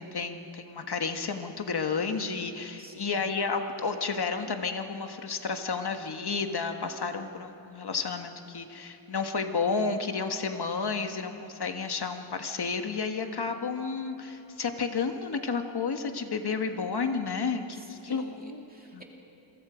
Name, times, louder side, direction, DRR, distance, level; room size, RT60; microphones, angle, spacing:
voice 1, 0.0-18.6 18.9-19.0, left 5 dB, 55° left, 6 dB, 1.6 m, -31 dB
voice 2, 2.8-3.2 17.7-19.0, right 1 dB, 20° right, 0 dB, 2.6 m, -50 dB
28.5 x 23.0 x 5.1 m, 2.9 s
wide cardioid pair, 115°, 47 cm